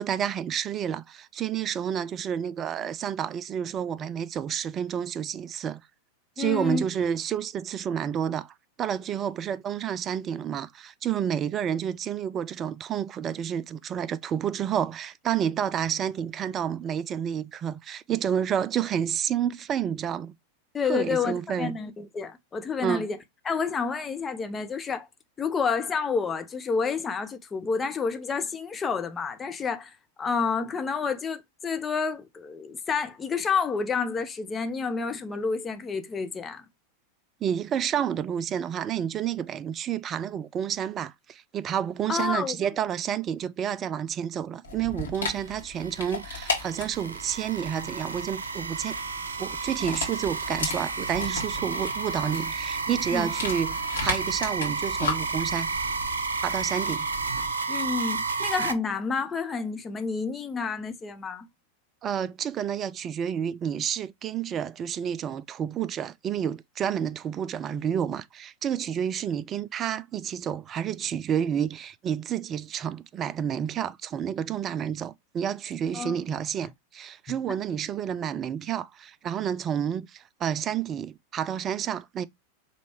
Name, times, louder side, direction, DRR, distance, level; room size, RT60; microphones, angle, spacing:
voice 1, 0.0-5.8 6.4-8.5 8.8-20.3 20.8-21.8 22.8-23.1 37.4-49.0 49.4-53.8 54.0-55.8 56.4-57.1 62.0-82.2, right 9 dB, 30° right, 0.3 m, -30 dB
voice 2, 6.4-6.8 20.7-23.2 23.4-25.1 25.4-36.6 42.1-42.7 53.1-53.3 57.7-61.5 75.9-76.2, left 5 dB, 20° left, 0.7 m, -29 dB
Dog, 44.6-57.5, left 3 dB, 70° left, 1.8 m, -36 dB
sound 1, 45.3-58.7, right 4 dB, 70° right, 0.6 m, -32 dB
5.2 x 3.2 x 3.0 m
figure-of-eight pair, 90°, 0 cm